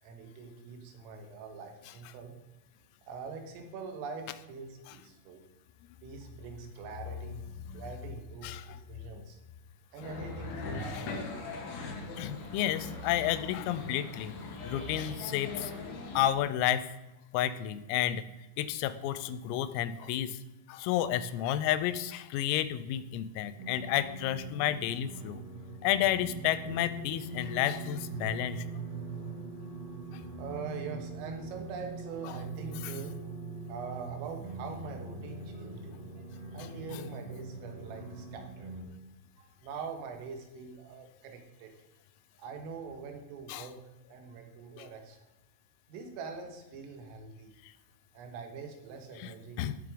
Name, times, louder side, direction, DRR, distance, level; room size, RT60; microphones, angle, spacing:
voice 1, 0.0-2.3 3.1-5.5 6.0-7.4 7.7-9.4 9.9-11.4 25.3-25.6 30.4-33.3 33.6-36.1 36.5-38.8 39.4-41.7 42.4-43.8 44.1-45.2 45.9-47.5 48.1-49.7, right 5 dB, 80° right, 4 dB, 4.1 m, -43 dB
voice 2, 8.4-8.8 10.9-11.1 12.2-14.3 14.6-15.7 16.1-16.9 17.3-18.2 18.6-20.4 20.7-25.4 25.8-28.6 30.1-30.2 32.2-32.3 32.8-32.9 36.9-37.0 43.5-43.7 44.8-44.9 47.6-47.7 49.2-49.8, left 12 dB, 90° left, 14 dB, 3.4 m, -31 dB
sound 1, 10.0-16.3, left 2 dB, 60° left, 3.0 m, -40 dB
sound 2, 23.6-38.8, right 4 dB, 50° right, 4.0 m, -42 dB
16.0 x 6.9 x 5.1 m, 0.99 s
omnidirectional pair, 5.9 m